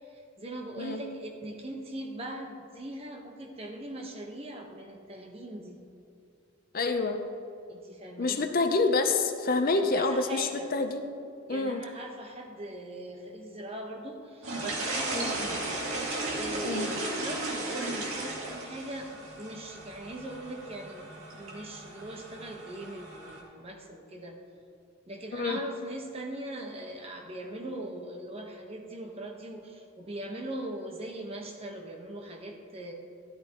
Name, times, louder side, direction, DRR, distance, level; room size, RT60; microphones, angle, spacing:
voice 1, 0.1-5.8 7.7-8.4 9.7-10.7 11.5-15.6 16.3-24.3 25.1-32.9, right 1 dB, 30° right, 1 dB, 1.1 m, -40 dB
voice 2, 6.7-7.2 8.2-11.0 11.5-11.8 15.1-15.3 16.6-16.9 25.3-25.6, left 3 dB, 45° left, 6 dB, 0.6 m, -27 dB
sound 1, 14.4-23.4, right 2 dB, 75° right, 2.1 m, -35 dB
12.5 x 12.0 x 3.0 m, 2.5 s
head